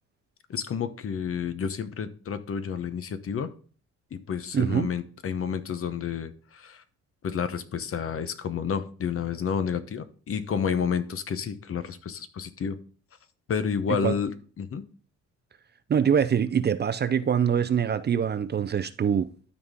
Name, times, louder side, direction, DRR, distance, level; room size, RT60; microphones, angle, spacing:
voice 1, 0.5-3.5 4.1-6.8 7.2-12.8 13.5-14.8, left 7 dB, 50° left, 0.9 m, -30 dB
voice 2, 4.5-4.9 13.9-14.1 15.9-19.3, right 8 dB, 35° right, 0.5 m, -24 dB
12.5 x 4.1 x 3.6 m
cardioid pair, 90°, 30 cm